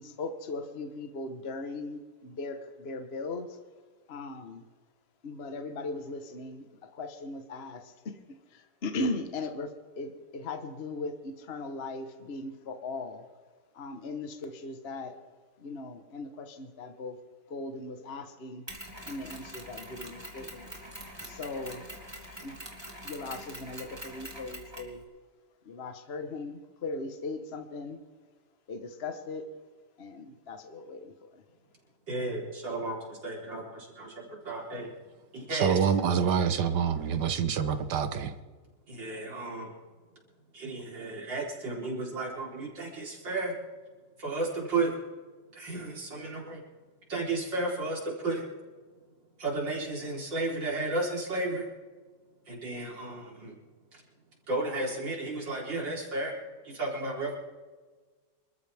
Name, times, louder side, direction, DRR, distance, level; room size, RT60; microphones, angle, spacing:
voice 1, 0.0-3.6 4.1-4.6 5.2-8.2 8.5-13.2 13.7-15.2 15.6-17.2 17.5-18.6 19.0-20.7 21.2-21.8 22.4-22.6 23.0-25.0 25.6-28.0 28.7-29.5 30.0-31.4, left 3 dB, 40° left, 1.3 m, -38 dB
Mechanisms, 18.7-25.0, right 1 dB, 15° right, 3.0 m, -44 dB
voice 2, 32.1-34.9 35.3-35.8 38.9-39.7 40.5-43.6 44.2-45.0 45.5-46.6 47.1-48.4 49.4-51.7 52.5-53.6 53.9-54.0 54.5-56.3 56.6-57.3, right 2 dB, 90° right, 4.7 m, -33 dB
voice 3, 35.5-38.3, right 7 dB, 70° right, 1.6 m, -26 dB
26.5 x 13.5 x 3.5 m
omnidirectional pair, 1.9 m